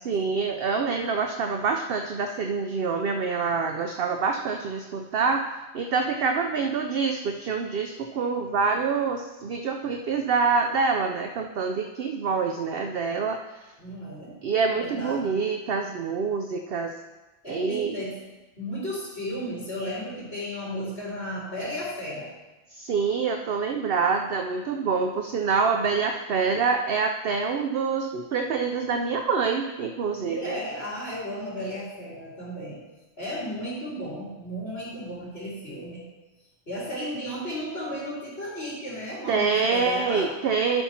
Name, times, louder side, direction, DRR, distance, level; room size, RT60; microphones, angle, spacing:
voice 1, 0.1-5.4 5.7-13.4 14.4-16.9 17.5-18.0 22.7-30.6 39.3-40.8, right 5 dB, 60° right, 4 dB, 0.7 m, -26 dB
voice 2, 13.8-14.3 14.7-15.4 17.4-18.1 18.6-22.3 30.2-32.8 33.2-36.0 36.7-40.3, equal, 50° left, -12 dB, 3.3 m, -34 dB
11.5 x 5.7 x 4.3 m, 1.1 s
omnidirectional pair, 1.3 m